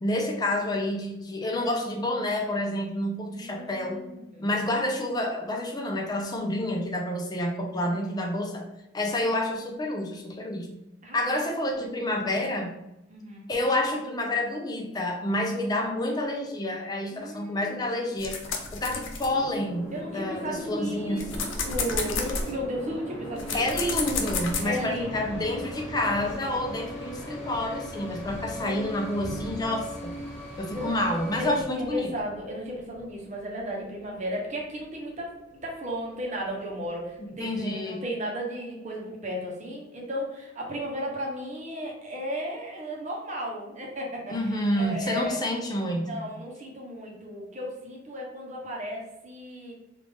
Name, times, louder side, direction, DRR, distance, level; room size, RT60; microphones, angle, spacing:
voice 1, 0.0-4.0 4.4-8.6 8.9-10.7 11.1-12.7 13.5-18.4 18.7-21.2 23.5-30.1 30.6-32.1 37.4-38.0 44.3-46.2, left 1 dB, 20° left, 1 dB, 0.5 m, -29 dB
voice 2, 3.4-4.5 7.8-8.0 11.0-11.2 13.1-13.5 17.1-17.9 19.9-23.6 24.6-25.5 28.6-29.1 30.7-31.0 31.4-35.4 35.6-45.4 46.0-49.7, equal, 40° right, -1 dB, 0.9 m, -35 dB
sound 1, 18.2-20.0 20.5-24.6, left 4 dB, 90° left, 0.6 m, -31 dB
sound 2, 19.2-31.6, equal, ahead, 1.4 m, -39 dB
Thunder, 20.4-37.2, equal, 85° right, 0.7 m, -46 dB
3.3 x 2.5 x 3.5 m, 0.92 s
head